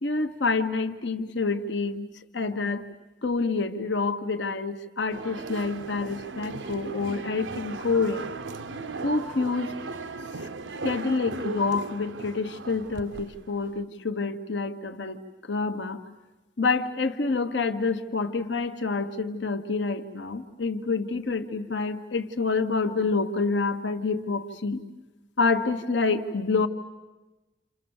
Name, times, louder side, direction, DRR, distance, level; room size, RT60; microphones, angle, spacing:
voice 1, 0.0-2.1 2.3-2.9 3.2-8.2 9.0-9.7 10.8-16.0 16.6-24.8 25.4-26.7, left 4 dB, 75° left, 7 dB, 1.2 m, -27 dB
sound 1, 5.1-13.8, right 3 dB, 90° right, 0.9 m, -37 dB
28.5 x 28.0 x 7.2 m, 1.1 s
head